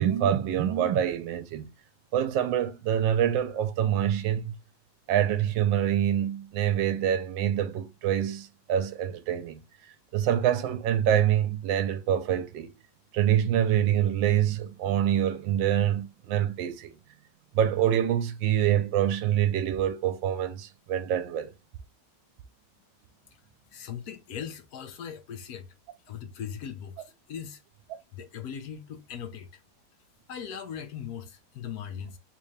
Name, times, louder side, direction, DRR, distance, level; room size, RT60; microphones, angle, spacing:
voice 1, 0.0-1.7 2.1-4.6 5.1-9.6 10.1-12.7 13.1-16.9 17.5-21.5, right 10 dB, 85° right, 1.3 m, -26 dB
voice 2, 23.7-25.7 26.1-27.6 28.1-29.6 30.3-32.2, left 8 dB, 65° left, 1.1 m, -39 dB
3.6 x 2.7 x 3.2 m
omnidirectional pair, 2.1 m